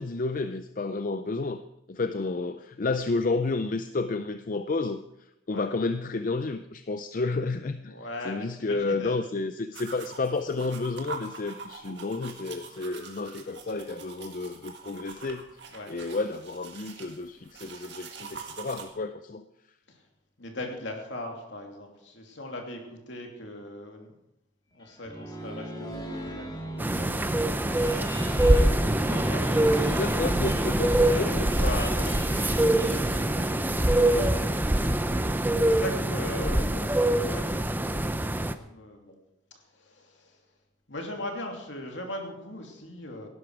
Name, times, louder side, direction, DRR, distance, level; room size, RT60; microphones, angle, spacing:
voice 1, 0.0-1.6 1.9-5.0 5.5-7.9 8.2-15.5 15.9-19.4 29.8-31.5 36.4-36.9, left 3 dB, 40° left, 10 dB, 0.5 m, -31 dB
voice 2, 7.9-9.2 12.7-12.8 13.4-13.6 15.7-15.9 19.9-20.1 20.4-24.1 24.7-30.1 30.9-34.4 35.6-37.5 38.7-39.2 39.6-40.4 40.9-43.3, left 1 dB, 65° left, 2 dB, 2.8 m, -40 dB
sound 1, 9.7-18.9, right 5 dB, 55° right, 2.0 m, -44 dB
sound 2, 24.8-35.6, right 1 dB, 20° left, 2.0 m, -40 dB
sound 3, 26.8-38.5, right 1 dB, 10° right, 0.5 m, -24 dB
17.5 x 11.0 x 4.8 m, 0.84 s
head